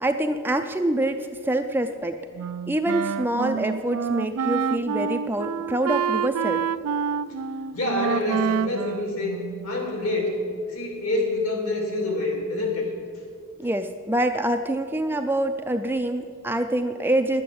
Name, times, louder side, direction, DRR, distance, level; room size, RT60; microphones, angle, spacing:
voice 1, 0.0-2.2 2.7-6.6 13.6-17.4, right 1 dB, 10° right, 6 dB, 0.4 m, -25 dB
Wind instrument woodwind instrument, 2.4-9.8, right 7 dB, 85° right, 0.4 m, -28 dB
voice 2, 7.7-9.4 9.6-10.4 10.7-12.9, left 2 dB, 70° left, 1 dB, 2.9 m, -26 dB
11.0 x 8.6 x 7.8 m, 2.1 s
head